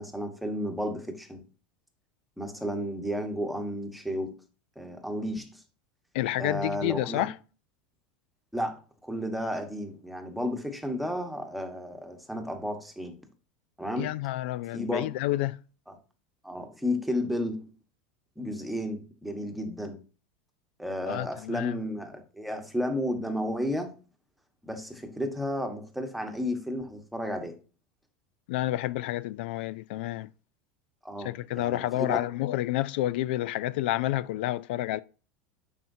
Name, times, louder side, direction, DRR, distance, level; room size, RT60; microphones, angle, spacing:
voice 1, 0.0-1.4 2.4-4.3 4.8-5.6 6.4-7.3 8.5-13.2 13.8-14.1 14.7-15.1 16.4-17.7 18.4-20.0 20.8-24.0 24.6-27.5 31.0-32.3, equal, ahead, 1.2 m, -33 dB
voice 2, 6.1-7.3 14.0-15.6 21.1-21.8 28.5-30.3 31.2-35.0, left 15 dB, 75° left, 0.4 m, -29 dB
7.5 x 5.8 x 2.7 m
supercardioid pair, 135°, 6 cm